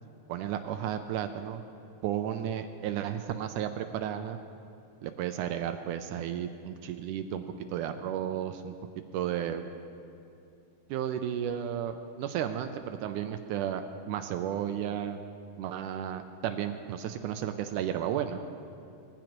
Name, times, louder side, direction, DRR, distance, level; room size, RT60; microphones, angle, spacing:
voice 1, 0.3-1.6 2.0-4.4 5.0-7.4 7.7-8.7 9.1-9.6 10.9-15.2 15.6-18.4, right 10 dB, 80° right, 8 dB, 2.0 m, -33 dB
20.5 x 15.5 x 3.0 m, 2.6 s
omnidirectional pair, 3.8 m